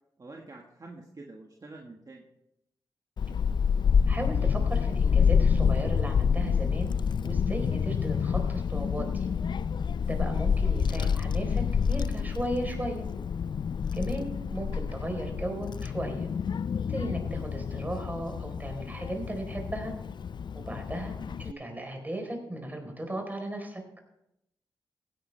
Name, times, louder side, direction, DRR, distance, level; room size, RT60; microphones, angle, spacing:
voice 1, 0.2-2.2 11.0-11.2 21.3-21.6, right 2 dB, 45° right, 0 dB, 1.6 m, -46 dB
Child speech kid speaking / Wind, 3.2-21.5, left 6 dB, 60° left, 0.3 m, -28 dB
voice 2, 4.1-6.9 7.2-9.3 10.0-13.1 13.9-16.3 16.9-19.9 20.5-23.8, right 1 dB, 20° right, 3 dB, 4.0 m, -36 dB
16.0 x 10.0 x 3.3 m, 0.82 s
cardioid pair, 50°, 9 cm